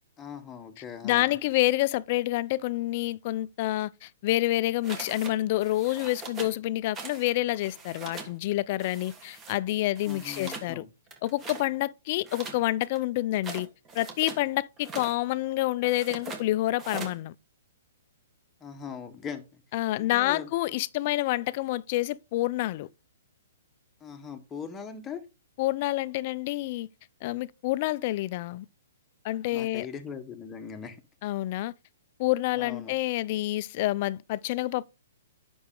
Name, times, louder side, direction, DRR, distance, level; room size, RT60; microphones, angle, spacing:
voice 1, 0.2-1.4 10.1-10.9 18.6-19.6 19.9-20.5 24.0-25.2 29.5-31.0 32.5-32.9, left 6 dB, 15° left, 1.2 m, -40 dB
voice 2, 1.0-10.8 11.2-13.7 13.9-17.3 19.7-22.9 25.6-26.9 27.2-28.7 29.2-29.9 31.2-31.7 32.2-34.8, left 16 dB, 40° left, 0.4 m, -28 dB
sound 1, 4.8-5.3 5.6-6.6 6.9-7.3 7.5-8.3 8.8-9.6 10.0-10.7 11.1-11.7 12.2-14.4 14.8-15.2 15.8-16.4 16.8-17.2, right 4 dB, 15° right, 1.5 m, -41 dB
9.4 x 6.2 x 3.8 m
hypercardioid pair, 155°, 0 cm